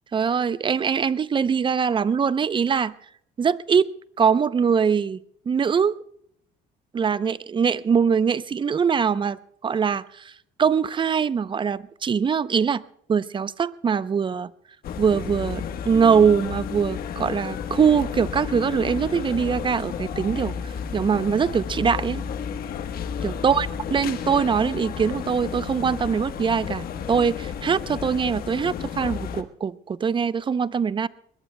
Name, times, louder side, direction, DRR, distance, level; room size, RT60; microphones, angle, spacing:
voice 1, 0.1-2.9 3.4-3.9 4.2-5.2 5.5-5.9 6.9-9.4 9.6-10.3 10.6-12.8 13.1-14.5 15.0-20.6 20.9-22.2 23.2-31.1, right 6 dB, 30° right, 16 dB, 0.6 m, -22 dB
sound 1, 14.8-29.4, left 7 dB, 60° left, 1.2 m, -32 dB
22.0 x 20.5 x 2.2 m, 0.68 s
cardioid pair, 110°, 17 cm